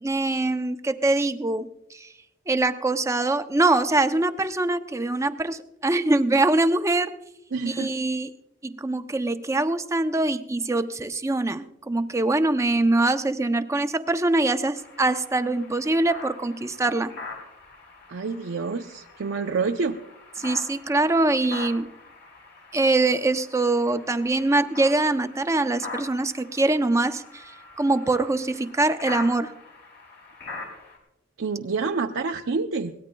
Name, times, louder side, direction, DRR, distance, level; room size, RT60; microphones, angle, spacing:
voice 1, 0.0-2.1 2.5-7.2 7.7-8.3 8.6-17.1 20.4-21.9 22.7-29.5, right 2 dB, 15° right, 9 dB, 0.5 m, -23 dB
voice 2, 7.5-7.9 18.1-20.0 31.4-32.9, right 4 dB, 65° right, 3 dB, 0.5 m, -27 dB
sound 1, 14.7-31.0, left 3 dB, 55° left, 5.0 m, -43 dB
22.0 x 17.5 x 2.3 m, 0.84 s
head